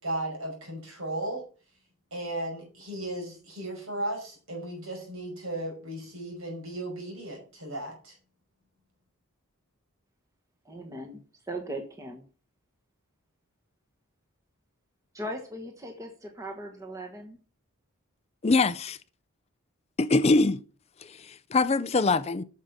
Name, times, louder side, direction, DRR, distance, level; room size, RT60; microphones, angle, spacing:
voice 1, 0.0-1.4 2.1-8.1, right 1 dB, 70° right, 5.6 m, -35 dB
voice 2, 10.6-12.2 15.1-17.4, right 1 dB, 15° right, 1.3 m, -39 dB
voice 3, 18.4-19.0 20.0-20.6 21.0-22.4, left 3 dB, 30° left, 0.4 m, -23 dB
8.7 x 6.6 x 7.1 m
head